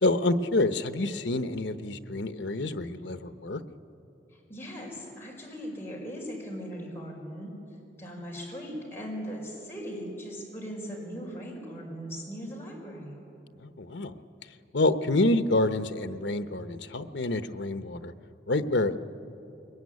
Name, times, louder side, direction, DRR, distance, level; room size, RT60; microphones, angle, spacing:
voice 1, 0.0-3.6 13.6-14.1 14.7-18.1 18.5-19.0, left 2 dB, 80° left, 10 dB, 1.0 m, -27 dB
voice 2, 4.5-7.5 8.0-13.2, equal, 15° left, -3 dB, 5.2 m, -39 dB
22.5 x 21.0 x 9.6 m, 2.8 s
head